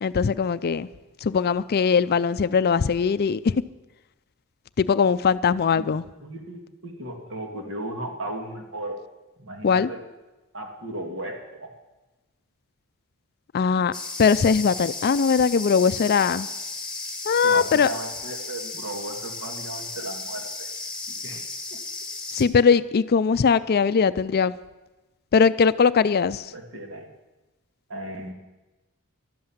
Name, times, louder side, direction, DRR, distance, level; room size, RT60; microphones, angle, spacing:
voice 1, 0.0-0.9 1.2-3.5 4.8-6.0 9.6-9.9 13.5-13.9 14.2-16.5 17.3-17.9 22.3-24.5 25.3-26.5, left 6 dB, 45° left, 15 dB, 0.4 m, -20 dB
voice 2, 6.2-9.0 9.4-10.0 10.5-11.7 17.4-20.7 21.1-21.4 21.7-21.8 26.5-27.1 27.9-28.3, right 1 dB, 60° right, 3 dB, 2.4 m, -35 dB
sound 1, 13.9-22.4, left 3 dB, 5° left, 1.8 m, -35 dB
13.5 x 12.0 x 7.3 m, 1.1 s
head